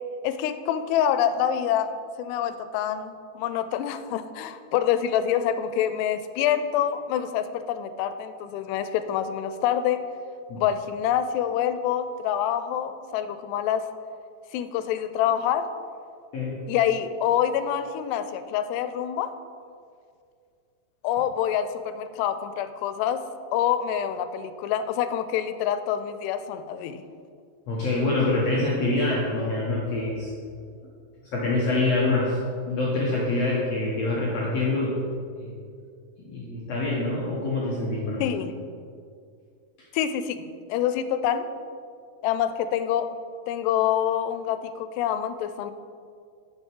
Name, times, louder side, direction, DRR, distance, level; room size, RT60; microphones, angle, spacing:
voice 1, 0.2-1.9 2.2-10.0 10.6-13.9 14.5-15.7 16.7-19.3 21.0-23.2 23.5-27.0 38.2-38.5 39.9-41.5 42.2-43.2 43.5-45.7, left 9 dB, 90° left, 11 dB, 2.7 m, -26 dB
voice 2, 16.3-16.6 27.7-30.3 31.2-32.4 32.6-35.0 35.4-35.5 36.2-38.2, left 2 dB, 75° left, -5 dB, 1.5 m, -25 dB
9.8 x 6.9 x 4.5 m, 2.3 s
omnidirectional pair, 4.7 m